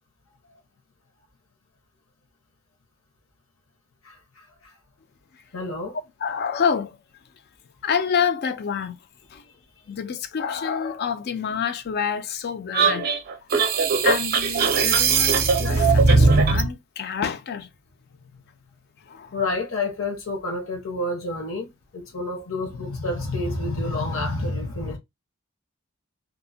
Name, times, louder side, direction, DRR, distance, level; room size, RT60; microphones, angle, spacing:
voice 1, 5.5-6.0 19.3-25.0, left 2 dB, 70° left, 1.0 m, -28 dB
voice 2, 6.2-7.0 7.8-9.0 9.3-9.4 9.9-13.1 14.0-17.7 19.1-19.3, left 7 dB, 50° left, 0.4 m, -27 dB
sound 1, 12.7-16.7, right 4 dB, 45° right, 0.5 m, -19 dB
2.8 x 2.1 x 2.6 m
head